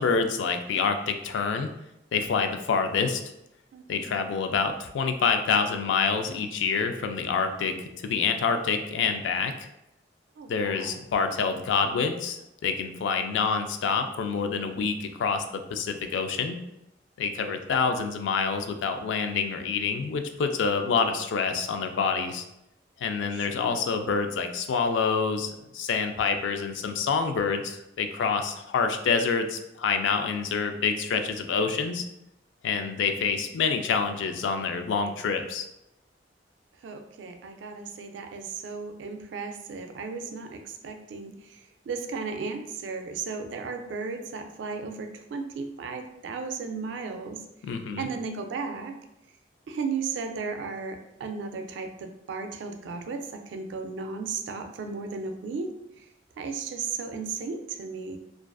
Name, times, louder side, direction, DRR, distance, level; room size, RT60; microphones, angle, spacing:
voice 1, 0.0-1.7 2.1-3.2 3.9-9.7 10.5-15.4 15.7-16.6 17.2-22.4 23.0-32.0 32.6-35.7 47.7-48.1, left 5 dB, 85° left, 7 dB, 0.3 m, -27 dB
voice 2, 3.7-4.2 10.4-11.1 17.4-18.0 23.3-23.8 36.8-47.4 48.0-49.0 49.7-56.1 56.4-58.2, right 4 dB, 75° right, 6 dB, 0.3 m, -35 dB
2.4 x 2.4 x 2.2 m, 0.85 s
head